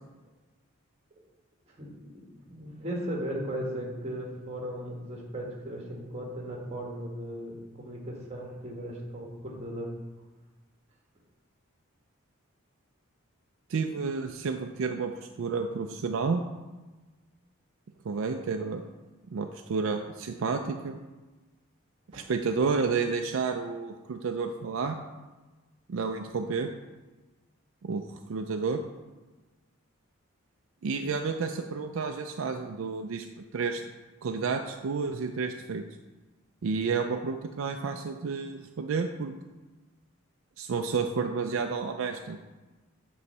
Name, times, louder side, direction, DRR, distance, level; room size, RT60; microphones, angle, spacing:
voice 1, 1.7-2.2 2.5-9.9 22.1-22.3, equal, 30° right, -1 dB, 1.3 m, -37 dB
voice 2, 13.7-15.1 15.4-16.4 18.0-18.8 19.3-21.0 22.1-25.0 25.9-26.7 27.8-28.8 30.8-33.3 33.5-33.8 34.2-35.8 36.6-39.3 40.6-42.4, right 5 dB, 70° right, 5 dB, 0.4 m, -30 dB
8.1 x 3.1 x 5.4 m, 1.2 s
head